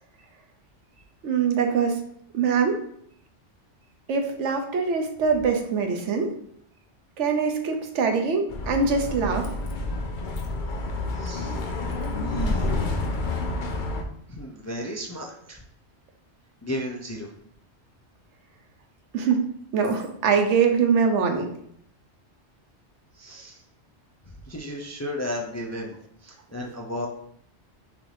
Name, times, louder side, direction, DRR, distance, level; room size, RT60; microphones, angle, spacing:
voice 1, 1.2-2.0 2.3-2.8 4.1-6.3 7.2-9.5 19.1-19.5 19.7-21.5, right 5 dB, 90° right, 4 dB, 1.0 m, -23 dB
Bus, 8.5-14.0, left 2 dB, 50° left, 0.7 m, -29 dB
voice 2, 11.1-11.6 12.1-12.8 14.3-15.6 16.6-17.3 23.1-23.6 24.5-27.1, equal, 25° left, 0 dB, 0.3 m, -34 dB
6.0 x 2.6 x 3.3 m, 0.67 s
omnidirectional pair, 1.2 m